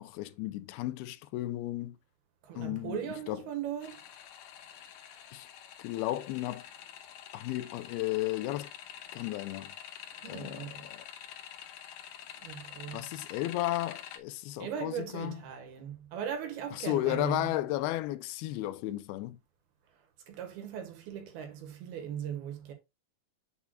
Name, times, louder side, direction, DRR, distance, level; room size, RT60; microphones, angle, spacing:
voice 1, 0.0-2.0 2.6-3.0 3.3-3.4 5.3-5.5 5.8-6.7 7.3-8.7 9.1-9.7 10.3-11.1 12.9-15.4 16.7-19.4, left 16 dB, 90° left, 2.6 m, -34 dB
voice 2, 2.4-4.1 10.2-10.9 12.4-13.1 14.6-17.5 19.9-22.7, right 9 dB, 80° right, 3.4 m, -39 dB
sound 1, 3.8-14.2, left 10 dB, 75° left, 2.1 m, -47 dB
8.3 x 6.3 x 2.3 m
omnidirectional pair, 4.4 m